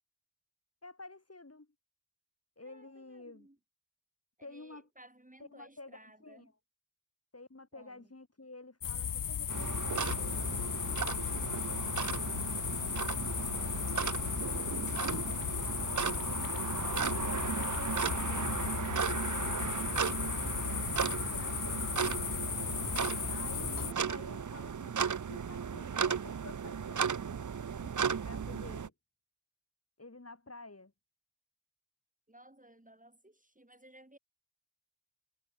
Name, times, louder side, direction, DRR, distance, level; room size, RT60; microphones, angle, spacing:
voice 1, 0.8-1.7 2.6-3.5 4.4-4.9 5.4-6.5 7.3-12.5 14.4-15.3 16.8-22.5 23.3-27.4 27.8-28.9 30.0-30.9, left 2 dB, 40° left, 5.5 m, -51 dB
voice 2, 2.6-3.6 4.4-6.5 7.7-8.1 27.8-28.0 32.3-34.2, right 1 dB, 20° right, 7.8 m, -58 dB
sound 1, 8.8-23.9, left 9 dB, 65° left, 0.6 m, -36 dB
sound 2, 9.5-28.9, right 7 dB, 55° right, 0.8 m, -35 dB
cardioid pair, 45°, 36 cm